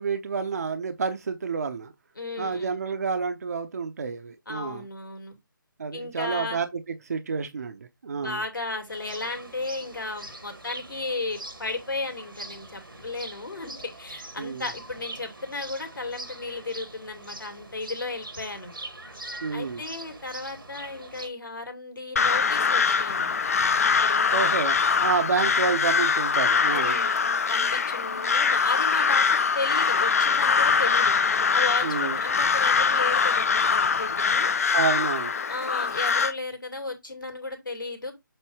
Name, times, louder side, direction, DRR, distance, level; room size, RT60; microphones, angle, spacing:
voice 1, 0.0-1.9 2.4-4.8 5.8-6.7 7.1-8.4 14.4-14.7 19.4-19.8 24.3-27.0 31.8-32.2 34.7-35.3, right 5 dB, 50° right, 0.7 m, -29 dB
voice 2, 2.2-2.8 4.5-5.4 5.9-6.6 8.1-18.7 19.5-23.4 23.8-24.3 26.7-34.5 35.5-38.1, left 3 dB, 70° left, 2.5 m, -34 dB
sound 1, 8.9-21.3, right 2 dB, 80° right, 1.7 m, -43 dB
Crow, 22.2-36.3, left 5 dB, 45° left, 0.7 m, -23 dB
7.7 x 3.0 x 4.5 m
figure-of-eight pair, 150°, 11 cm